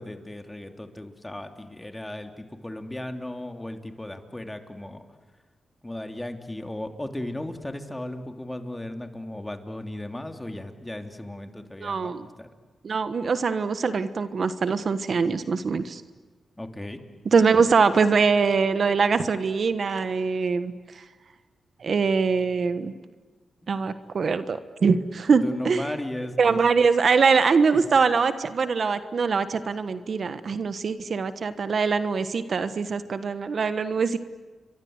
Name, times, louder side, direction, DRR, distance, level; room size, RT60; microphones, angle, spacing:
voice 1, 0.0-5.1 5.8-12.5 16.6-17.1 25.3-26.6 27.7-27.8, left 1 dB, 15° left, 5 dB, 3.0 m, -36 dB
voice 2, 11.8-12.3 12.8-16.0 17.3-20.7 21.8-22.9 23.7-25.8 26.4-34.2, right 5 dB, 60° right, 11 dB, 1.3 m, -23 dB
29.5 x 24.0 x 8.1 m, 1.3 s
cardioid pair, 65°, 0 cm